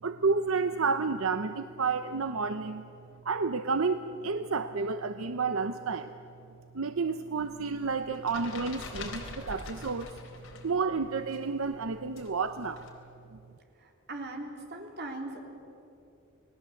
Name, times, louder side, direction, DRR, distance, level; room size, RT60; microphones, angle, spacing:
voice 1, 0.0-2.9 3.2-6.1 6.7-10.1 10.6-12.9 13.3-13.4, right 4 dB, 80° right, 9 dB, 0.8 m, -30 dB
sound 1, 7.4-10.7 11.0-12.9, left 3 dB, 80° left, 4.0 m, -44 dB
voice 2, 13.8-15.4, right 2 dB, 55° right, 2 dB, 3.4 m, -40 dB
29.0 x 20.0 x 7.8 m, 2.8 s
head